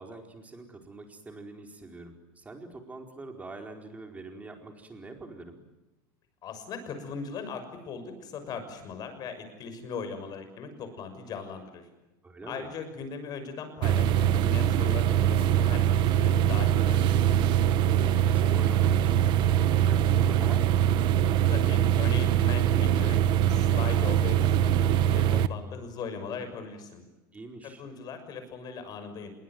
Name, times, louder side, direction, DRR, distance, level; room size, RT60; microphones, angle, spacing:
voice 1, 0.0-5.6 12.2-12.7 18.0-20.8 27.3-27.8, right 3 dB, 15° right, 4 dB, 4.5 m, -44 dB
voice 2, 6.4-11.8 12.4-17.1 21.5-24.7 25.1-27.0 27.8-29.3, left 5 dB, 35° left, 8 dB, 6.4 m, -39 dB
sound 1, 13.8-25.5, right 10 dB, 45° right, 1.2 m, -23 dB
26.5 x 22.5 x 9.3 m, 1.0 s
supercardioid pair, 150°, 11 cm